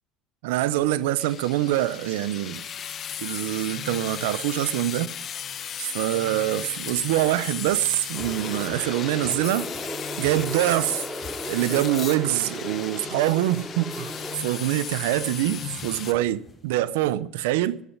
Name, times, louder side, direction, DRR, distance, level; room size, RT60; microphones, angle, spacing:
voice 1, 0.4-2.6 3.2-5.1 5.8-9.7 10.2-11.1 11.5-17.8, right 14 dB, 90° right, 0.7 m, -25 dB
sound 1, 1.2-16.1, left 9 dB, 45° left, 0.9 m, -36 dB
sound 2, 7.1-16.8, left 2 dB, 25° left, 4.9 m, -51 dB
sound 3, 8.1-14.4, right 1 dB, 10° right, 2.6 m, -36 dB
13.5 x 8.4 x 9.8 m
supercardioid pair, 105°, 0 cm